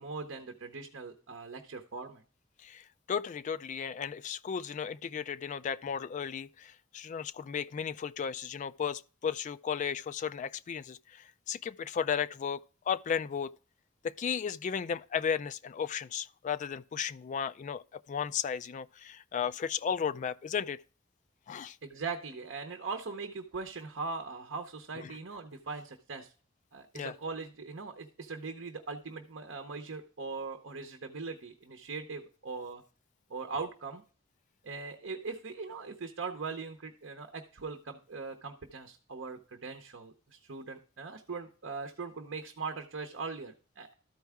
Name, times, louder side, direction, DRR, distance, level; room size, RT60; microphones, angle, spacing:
voice 1, 0.0-2.2 21.8-26.3 26.7-32.8 33.3-34.0 34.6-43.9, right 4 dB, 70° right, 0.8 m, -40 dB
voice 2, 2.6-13.5 14.0-20.8 21.5-21.8 25.0-25.2 26.9-27.1, left 7 dB, 40° left, 0.3 m, -35 dB
13.0 x 4.7 x 3.5 m
head